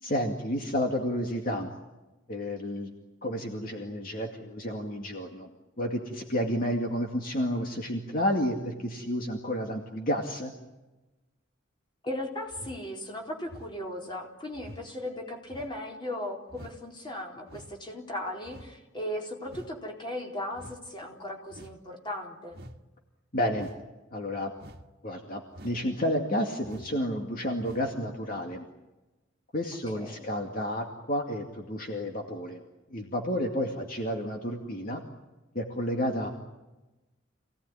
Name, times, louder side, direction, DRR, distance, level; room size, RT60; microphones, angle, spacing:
voice 1, 0.0-1.7 2.3-2.9 3.2-5.5 5.8-10.5 23.3-23.7 24.1-24.5 25.0-28.7 29.5-32.6 32.9-35.0 35.5-36.3, equal, 45° left, 2 dB, 2.3 m, -31 dB
voice 2, 12.0-22.6 29.9-30.3, left 1 dB, 25° left, 1 dB, 4.1 m, -37 dB
sound 1, 12.5-12.8 13.5-13.8 14.5-14.8 15.5-15.8 16.5-16.8 17.5-17.8 18.4-18.8 19.5-19.8 20.5-20.8 21.5-21.8 22.5-22.8 23.5-23.8 24.6-24.9 25.5-25.9 26.6-27.0 27.6-27.9 28.5-28.6, equal, 55° right, 1.6 m, -48 dB
27.5 x 18.0 x 9.8 m, 1.1 s
head